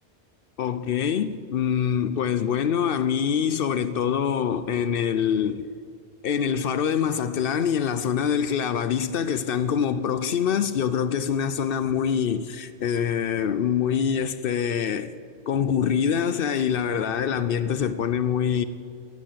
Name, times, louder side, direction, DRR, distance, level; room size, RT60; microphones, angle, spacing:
voice 1, 0.6-5.7 6.2-15.1 15.5-18.6, left 8 dB, 60° left, 0.7 m, -25 dB
14.0 x 9.4 x 7.4 m
omnidirectional pair, 1.2 m